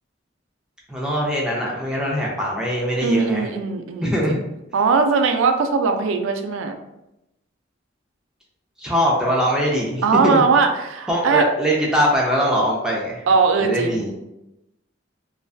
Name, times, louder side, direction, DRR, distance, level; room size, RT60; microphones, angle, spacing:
voice 1, 0.9-3.5 4.0-4.4 8.8-10.4 11.1-13.2 13.6-14.1, equal, 5° right, -4 dB, 0.3 m, -22 dB
voice 2, 3.0-4.2 4.7-6.8 10.0-11.4 13.3-14.0, right 4 dB, 85° right, 6 dB, 0.3 m, -19 dB
2.5 x 2.2 x 2.3 m, 0.92 s
head